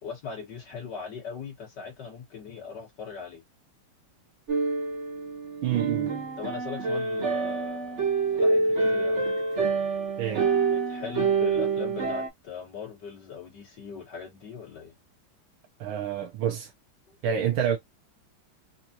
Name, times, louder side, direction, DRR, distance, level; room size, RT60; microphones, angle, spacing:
voice 1, 0.0-3.4 6.4-8.0 8.3-9.2 10.7-14.9 17.1-17.5, left 6 dB, 60° left, 2.1 m, -40 dB
sound 1, 4.5-12.3, right 4 dB, 40° right, 1.2 m, -27 dB
voice 2, 5.6-6.1 10.2-10.5 15.8-16.7 17.2-17.8, right 9 dB, 90° right, 1.6 m, -27 dB
4.9 x 2.3 x 2.8 m
omnidirectional pair, 2.2 m